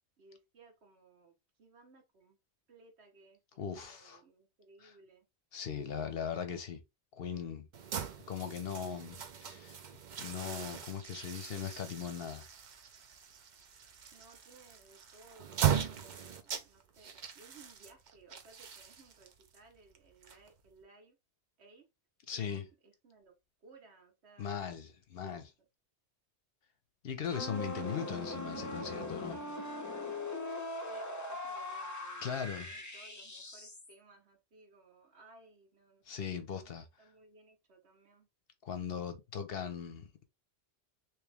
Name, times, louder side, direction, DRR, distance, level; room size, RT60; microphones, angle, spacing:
voice 1, 0.2-1.3 1.6-2.4 2.7-3.4 3.7-5.3 14.1-21.2 21.6-21.9 22.3-23.3 23.6-24.5 30.9-36.0 36.5-38.3, right 3 dB, 70° right, 1.3 m, -61 dB
voice 2, 3.6-4.2 4.8-4.9 5.5-6.8 7.2-7.7 8.3-9.8 10.2-12.4 22.3-22.7 24.4-25.5 27.0-29.4 32.2-32.7 36.1-36.9 38.6-40.2, left 7 dB, 60° left, 0.8 m, -39 dB
sound 1, 7.7-20.8, right 9 dB, 50° right, 0.6 m, -39 dB
sound 2, 27.3-33.9, left 2 dB, 20° left, 0.5 m, -41 dB
3.1 x 3.0 x 3.4 m
omnidirectional pair, 1.1 m